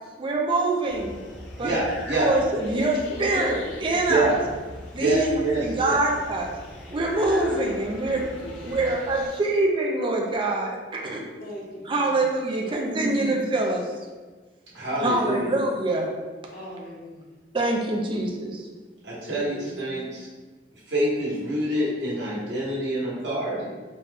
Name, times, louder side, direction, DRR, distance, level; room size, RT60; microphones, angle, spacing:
voice 1, 0.2-1.2 1.6-1.7 2.1-4.3 4.9-6.5 6.9-8.3 8.6-11.2 11.9-13.9 15.0-16.1 17.5-18.7, right 2 dB, 30° right, -1 dB, 0.4 m, -25 dB
sound 1, 0.9-9.3, left 1 dB, 85° left, 0.7 m, -40 dB
voice 2, 1.6-2.3 4.1-4.3 5.0-6.0 14.7-15.5 19.0-20.3 20.9-23.7, right 2 dB, 85° right, -6 dB, 1.3 m, -26 dB
voice 3, 2.7-4.6 8.1-8.9 11.4-12.2 12.6-13.3 14.9-15.5 16.5-17.3 19.2-20.1, left 1 dB, 55° left, -4 dB, 0.9 m, -38 dB
4.0 x 2.2 x 3.3 m, 1.3 s
head